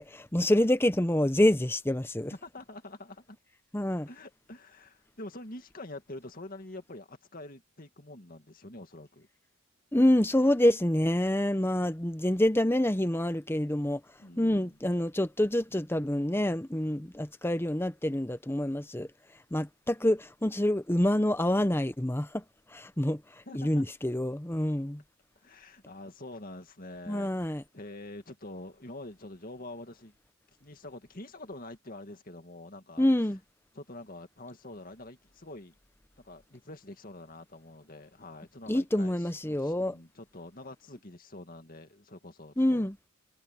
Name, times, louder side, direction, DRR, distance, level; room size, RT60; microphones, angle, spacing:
voice 1, 0.0-2.3 3.7-4.1 9.9-14.0 14.4-19.1 19.5-22.4 22.7-23.2 23.5-25.0 27.1-27.6 33.0-33.4 38.7-40.0 42.6-43.0, left 1 dB, 10° left, 0.8 m, -27 dB
voice 2, 2.3-3.4 4.1-9.3 14.2-14.7 23.5-23.8 25.4-30.1 30.6-33.1 33.8-35.7 36.2-42.9, left 2 dB, 40° left, 2.2 m, -46 dB
head